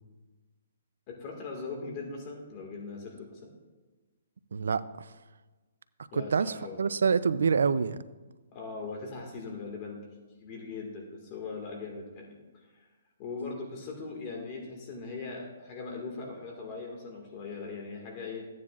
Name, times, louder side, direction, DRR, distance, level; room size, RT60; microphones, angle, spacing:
voice 1, 1.1-3.5 6.1-6.9 8.5-10.0 10.3-12.9 13.2-18.4, left 4 dB, 30° left, 1.8 m, -40 dB
voice 2, 4.5-5.1 6.1-8.0, right 5 dB, 80° right, 0.5 m, -27 dB
14.5 x 9.5 x 2.4 m
hypercardioid pair, 155°, 0 cm